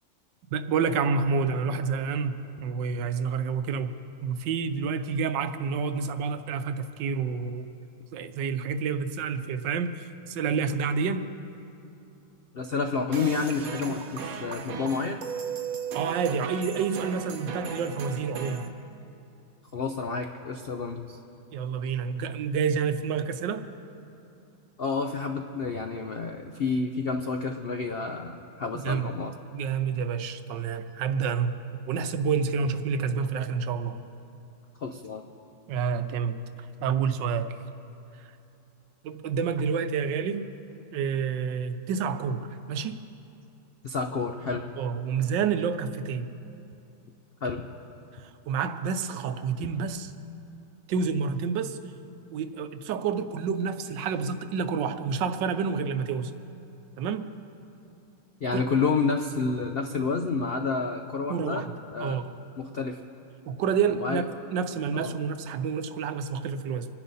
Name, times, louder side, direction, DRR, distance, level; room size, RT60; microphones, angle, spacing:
voice 1, 0.5-4.0 4.2-7.6 8.1-11.3 15.9-18.7 21.5-23.6 28.8-29.1 29.5-31.6 31.9-34.0 35.7-37.6 39.0-40.5 40.9-43.0 44.8-46.3 48.2-50.1 50.9-51.8 52.3-56.3 57.0-57.3 58.5-58.6 61.3-61.7 62.0-62.3 63.5-66.9, right 6 dB, 85° right, 10 dB, 1.4 m, -29 dB
voice 2, 12.5-15.2 19.7-21.2 24.8-29.3 34.8-35.2 43.8-44.6 47.4-47.6 58.4-61.6 61.9-62.2 62.6-63.0 64.0-64.2 64.9-65.1, left 4 dB, 70° left, 5 dB, 0.5 m, -29 dB
sound 1, 13.1-18.7, right 6 dB, 60° right, 1.3 m, -36 dB
26.5 x 10.0 x 4.1 m, 2.8 s
omnidirectional pair, 1.9 m